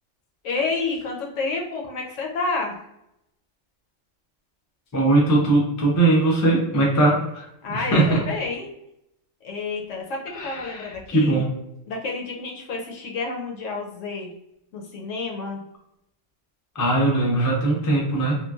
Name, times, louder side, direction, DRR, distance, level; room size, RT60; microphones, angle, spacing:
voice 1, 0.4-2.8 7.6-8.7 9.4-11.4 11.9-14.3 14.7-15.6, left 3 dB, 75° left, 0 dB, 1.0 m, -29 dB
voice 2, 4.9-8.2 10.3-11.5 16.7-18.4, right 2 dB, 25° left, -2 dB, 0.4 m, -20 dB
3.1 x 2.2 x 2.3 m, 0.81 s
omnidirectional pair, 1.3 m